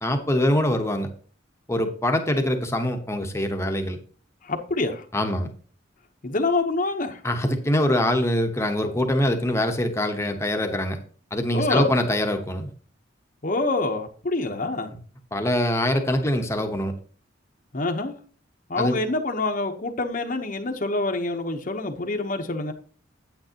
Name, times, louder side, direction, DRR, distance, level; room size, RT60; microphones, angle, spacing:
voice 1, 0.0-1.1 1.7-4.0 5.1-5.5 7.2-11.0 11.3-12.7 15.3-16.9 18.8-19.0, left 1 dB, 15° left, 4 dB, 1.0 m, -24 dB
voice 2, 4.4-5.0 6.2-7.2 11.5-11.9 13.4-14.9 17.7-18.1 18.7-22.7, left 2 dB, 45° left, 4 dB, 0.9 m, -26 dB
9.1 x 9.0 x 2.9 m, 0.42 s
head